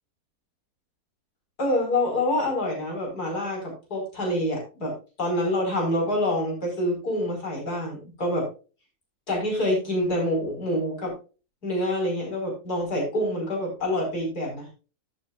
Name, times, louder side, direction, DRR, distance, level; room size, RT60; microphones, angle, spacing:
voice 1, 1.6-8.5 9.3-11.1 11.6-14.7, left 1 dB, 80° left, 0 dB, 5.9 m, -26 dB
14.5 x 8.4 x 2.5 m, 0.33 s
omnidirectional pair, 1.6 m